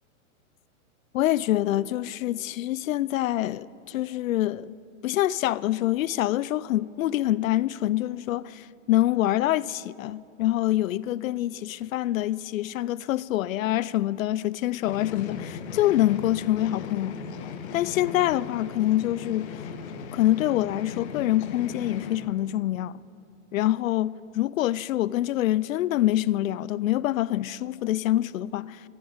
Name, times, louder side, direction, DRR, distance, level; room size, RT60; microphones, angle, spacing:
voice 1, 1.1-4.8 5.0-17.2 17.7-19.6 20.1-23.0 23.5-28.8, left 14 dB, 75° left, 0.5 m, -25 dB
sound 1, 14.9-22.2, left 6 dB, 55° left, 1.4 m, -38 dB
14.0 x 12.0 x 7.2 m
hypercardioid pair, 150°, 40 cm